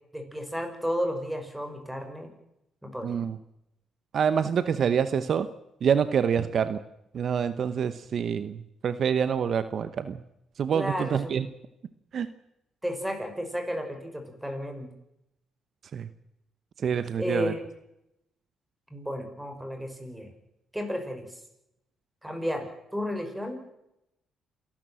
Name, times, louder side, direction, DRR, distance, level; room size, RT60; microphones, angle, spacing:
voice 1, 0.1-2.3 2.8-3.2 10.7-11.3 12.8-14.9 17.2-17.6 18.9-20.3 20.7-21.3 22.2-23.6, equal, 5° right, 5 dB, 5.5 m, -32 dB
voice 2, 3.0-3.4 4.1-5.5 5.8-6.8 7.1-10.2 10.6-11.5 12.1-12.3 15.9-16.1 16.8-17.5, right 7 dB, 55° right, 13 dB, 0.9 m, -26 dB
28.0 x 12.0 x 7.7 m, 0.85 s
cardioid pair, 90°, 0 cm